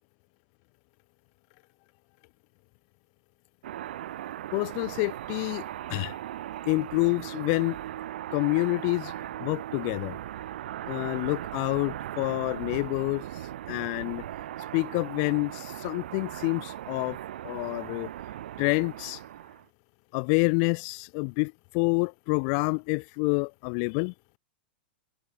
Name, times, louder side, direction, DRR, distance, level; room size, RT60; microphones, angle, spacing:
sound 1, 3.6-19.7, right 12 dB, 75° right, 1.1 m, -38 dB
voice 1, 4.5-5.6 5.9-6.1 6.7-7.8 8.3-9.1 9.4-10.2 10.9-13.2 13.7-14.2 14.7-17.2 17.4-18.1 18.6-19.2 20.1-24.1, left 40 dB or more, 45° left, 0.4 m, -27 dB
supercardioid pair, 145°, 6 cm